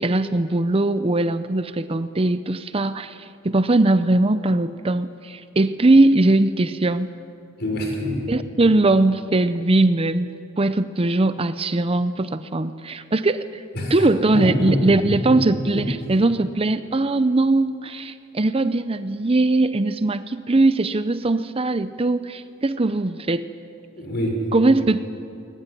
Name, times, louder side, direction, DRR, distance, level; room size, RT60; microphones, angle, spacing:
voice 1, 0.0-7.1 8.3-10.3 10.6-13.6 13.9-23.5 24.5-25.0, right 2 dB, 30° right, 12 dB, 0.6 m, -20 dB
voice 2, 7.6-8.2 13.7-14.1 14.3-15.8 24.0-24.5, equal, 55° left, 2 dB, 5.8 m, -25 dB
21.0 x 20.0 x 10.0 m, 2.5 s
head